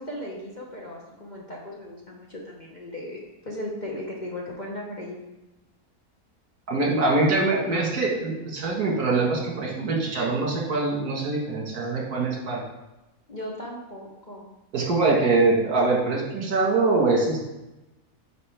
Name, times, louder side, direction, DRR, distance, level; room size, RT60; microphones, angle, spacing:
voice 1, 0.0-3.2 3.4-5.2 13.3-14.4, left 1 dB, 35° left, -3 dB, 1.0 m, -36 dB
voice 2, 6.7-12.6 14.7-17.4, right 3 dB, 75° right, -2 dB, 2.1 m, -23 dB
9.3 x 4.8 x 3.4 m, 1.0 s
omnidirectional pair, 1.7 m